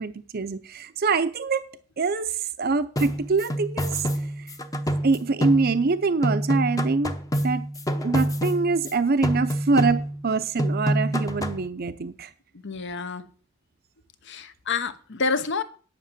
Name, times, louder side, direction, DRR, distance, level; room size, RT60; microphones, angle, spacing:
voice 1, 0.0-1.7 2.0-4.1 4.4-4.5 5.0-7.2 7.4-7.7 8.0-12.3, right 4 dB, 50° right, 0.6 m, -24 dB
sound 1, 3.0-6.0 6.2-8.9 9.2-10.3 10.6-11.7, equal, 15° left, 0.8 m, -27 dB
voice 2, 12.6-13.3 14.2-15.6, left 4 dB, 60° left, 1.0 m, -28 dB
10.0 x 5.9 x 7.4 m
head